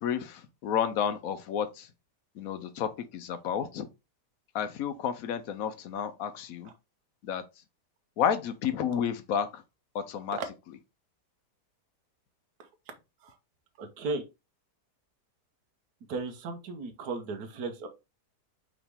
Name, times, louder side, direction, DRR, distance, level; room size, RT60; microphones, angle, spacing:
voice 1, 0.0-1.9 2.3-3.9 4.5-6.7 7.2-7.4 8.2-9.6 9.9-10.4, left 8 dB, 65° left, 0.9 m, -31 dB
voice 2, 13.8-14.2 16.1-17.9, right 3 dB, 75° right, 1.4 m, -35 dB
4.9 x 3.1 x 3.4 m
omnidirectional pair, 1.8 m